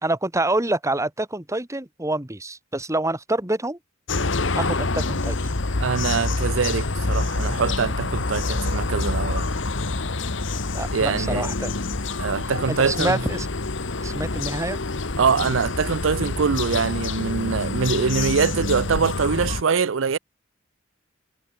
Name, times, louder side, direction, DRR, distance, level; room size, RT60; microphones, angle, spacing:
voice 1, 0.0-3.8 4.5-5.4 10.7-11.7 12.7-13.5 14.0-14.8, right 2 dB, 15° right, 2.3 m, -26 dB
sound 1, 4.1-19.6, left 3 dB, 70° left, 1.4 m, -26 dB
voice 2, 5.8-9.5 10.9-11.5 12.2-13.2 15.2-20.2, right 5 dB, 80° right, 0.6 m, -23 dB
head